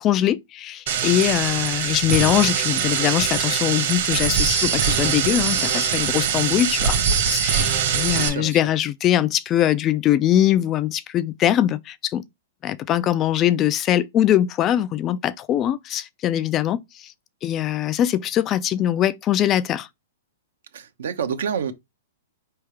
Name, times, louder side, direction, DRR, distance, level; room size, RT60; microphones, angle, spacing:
voice 1, 0.0-7.0 7.3-12.2 12.6-17.1 17.4-19.9, left 12 dB, 25° left, 0.3 m, -22 dB
sound 1, 0.9-8.3, right 7 dB, 55° right, 1.3 m, -22 dB
voice 2, 8.2-8.6 20.7-21.7, right 7 dB, 75° right, 0.8 m, -28 dB
4.6 x 3.4 x 3.2 m
hypercardioid pair, 150°, 0 cm